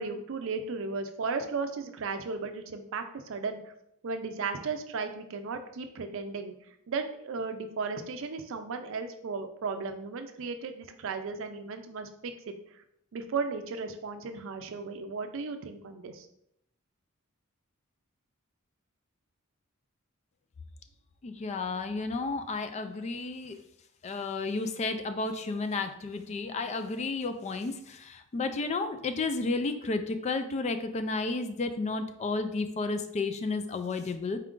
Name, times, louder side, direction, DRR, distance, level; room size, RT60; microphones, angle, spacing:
voice 1, 0.0-3.6 4.0-6.5 6.9-12.5 13.1-16.3, right 4 dB, 65° right, 7 dB, 0.5 m, -35 dB
voice 2, 21.2-23.6 24.0-34.4, left 3 dB, 30° left, 8 dB, 0.3 m, -32 dB
4.3 x 2.4 x 3.7 m, 0.73 s
head